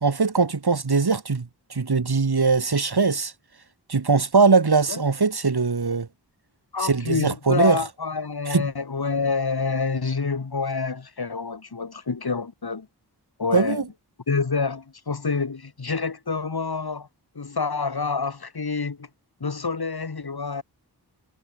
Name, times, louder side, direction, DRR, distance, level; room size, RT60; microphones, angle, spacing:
voice 1, 0.0-3.3 3.9-6.1 6.8-7.8 8.5-8.7 13.5-13.9, right 4 dB, 70° right, 3.5 m, -21 dB
voice 2, 6.7-12.9 13.4-13.8 14.3-17.1 17.3-19.1 19.4-20.6, left 4 dB, 65° left, 3.2 m, -27 dB
wide cardioid pair, 70°, 40 cm